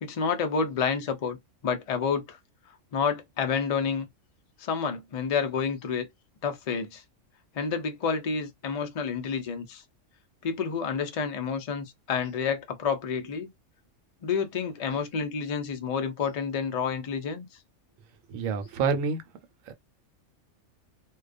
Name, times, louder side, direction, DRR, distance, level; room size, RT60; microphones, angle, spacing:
voice 1, 0.0-1.4 1.6-2.4 2.9-4.1 4.6-6.1 6.4-7.0 7.5-9.8 10.4-13.5 14.2-17.5, left 6 dB, 65° left, 0.3 m, -29 dB
voice 2, 18.3-19.2 19.7-19.8, right 5 dB, 90° right, 1.0 m, -27 dB
2.3 x 2.2 x 2.4 m
omnidirectional pair, 1.3 m